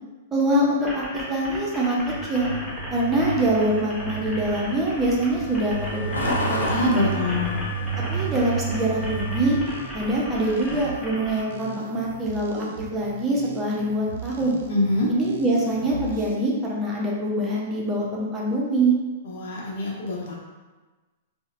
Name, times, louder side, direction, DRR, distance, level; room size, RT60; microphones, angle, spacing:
voice 1, 0.3-2.0 2.3-2.5 2.9-6.6 8.1-9.6 9.9-14.6 15.1-19.0, right 1 dB, 20° right, -4 dB, 0.7 m, -24 dB
sound 1, 0.8-11.4, equal, 5° left, 1.0 m, -36 dB
Truck, 2.0-9.6, right 2 dB, 85° left, 0.5 m, -30 dB
voice 2, 6.7-7.6 14.7-15.1 19.2-20.4, left 1 dB, 60° left, -3 dB, 0.8 m, -24 dB
sound 2, 9.0-16.4, right 5 dB, 65° right, 0.4 m, -40 dB
3.9 x 2.1 x 2.5 m, 1.2 s
figure-of-eight pair, 105°, 0 cm